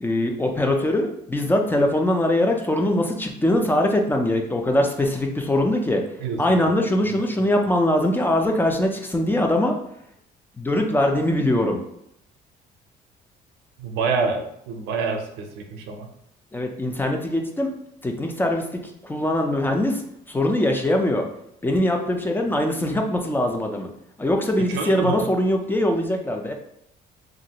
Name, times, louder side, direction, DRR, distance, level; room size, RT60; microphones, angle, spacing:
voice 1, 0.0-6.0 6.4-9.8 10.6-11.8 16.5-17.7 18.0-20.0 20.3-21.3 21.6-23.9 24.2-26.5, left 1 dB, 10° left, 3 dB, 0.4 m, -22 dB
voice 2, 13.8-16.1 24.7-25.2, right 5 dB, 90° right, 4 dB, 0.6 m, -27 dB
3.0 x 2.5 x 2.8 m, 0.75 s
cardioid pair, 110°, 17 cm